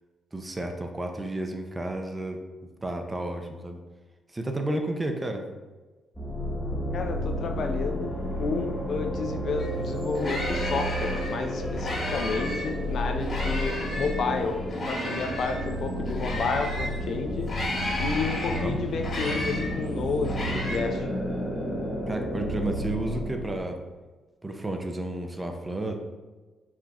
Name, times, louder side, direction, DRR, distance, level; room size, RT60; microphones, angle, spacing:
voice 1, 0.3-2.4 2.8-3.8 4.3-5.4 13.4-13.6 18.4-18.8 22.1-23.8 24.4-26.0, right 1 dB, 20° right, 4 dB, 0.6 m, -32 dB
sound 1, 6.2-23.6, equal, 10° left, 1.1 m, -31 dB
voice 2, 6.9-14.6 14.9-17.5 18.0-21.1, left 4 dB, 60° left, 5 dB, 0.5 m, -31 dB
sound 2, 9.6-9.7 10.0-12.7 13.2-17.0 17.4-20.8, left 1 dB, 35° left, 1.4 m, -34 dB
4.8 x 2.7 x 3.5 m, 1.3 s
cardioid pair, 90°, 0 cm